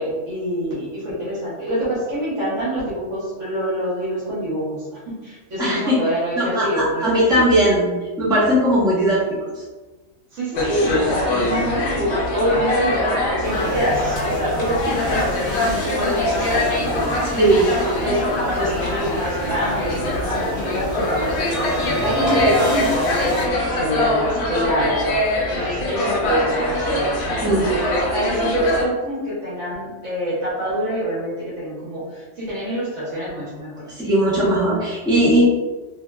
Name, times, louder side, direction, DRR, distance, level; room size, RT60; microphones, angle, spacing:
voice 1, 0.0-7.5 10.3-17.3 18.0-25.0 25.5-33.8, equal, 60° right, -8 dB, 1.3 m, -25 dB
voice 2, 5.6-6.0 6.4-7.9 8.2-9.2 17.4-17.7 27.4-27.7 33.9-35.4, right 1 dB, 5° right, -8 dB, 0.6 m, -18 dB
sound 1, 10.5-28.8, left 1 dB, 60° left, 0.8 m, -23 dB
sound 2, 13.4-23.4, equal, 30° left, 1.6 m, -32 dB
2.9 x 2.7 x 2.2 m, 1.2 s
omnidirectional pair, 1.5 m